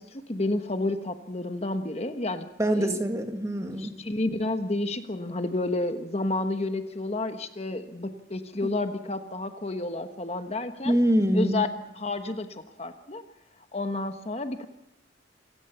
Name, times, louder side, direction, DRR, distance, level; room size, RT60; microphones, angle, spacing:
voice 1, 0.0-3.0 3.8-11.0 11.3-11.7 11.9-13.2 13.7-14.7, left 2 dB, 35° left, 8 dB, 1.2 m, -30 dB
voice 2, 2.6-4.0 10.8-11.7, right 1 dB, 15° right, 6 dB, 1.9 m, -24 dB
28.0 x 15.5 x 7.1 m, 0.86 s
head